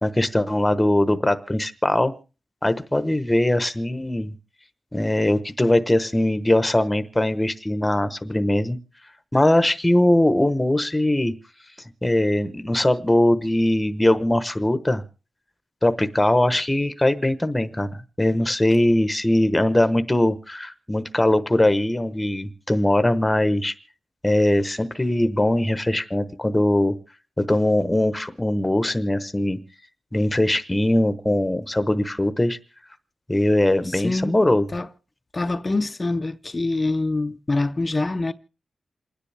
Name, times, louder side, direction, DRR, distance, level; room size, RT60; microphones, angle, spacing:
voice 1, 0.0-2.1 2.6-4.3 4.9-8.8 9.3-11.3 12.0-15.0 15.8-17.9 18.2-23.7 24.2-26.9 27.4-29.6 30.1-32.6 33.3-34.6, left 1 dB, 10° left, 1.0 m, -21 dB
voice 2, 33.9-34.3 34.7-34.9 35.3-38.3, left 2 dB, 30° left, 0.6 m, -25 dB
28.0 x 9.9 x 3.4 m
wide cardioid pair, 105°, 0 cm